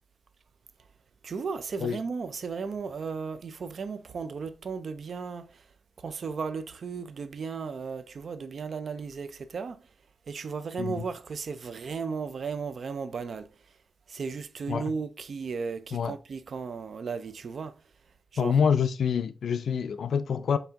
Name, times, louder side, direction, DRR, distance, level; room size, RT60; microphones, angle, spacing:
voice 1, 1.2-5.7 6.0-9.9 10.3-13.8 14.1-17.8 18.3-18.6, right 5 dB, 55° right, 0.4 m, -35 dB
voice 2, 18.4-20.6, left 7 dB, 75° left, 0.4 m, -26 dB
5.6 x 2.6 x 2.7 m
wide cardioid pair, 150°, 0 cm